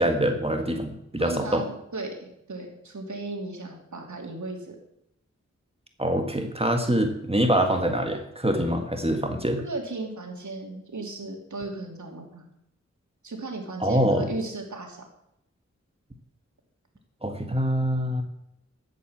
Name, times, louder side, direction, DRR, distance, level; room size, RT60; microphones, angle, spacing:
voice 1, 0.0-1.6 6.0-9.6 13.8-14.3 17.2-18.2, right 1 dB, 20° right, 4 dB, 1.8 m, -24 dB
voice 2, 1.2-4.8 9.6-12.5 13.2-15.0, right 2 dB, 80° right, 1 dB, 3.1 m, -36 dB
12.5 x 8.3 x 7.5 m, 0.80 s
wide cardioid pair, 55°, 29 cm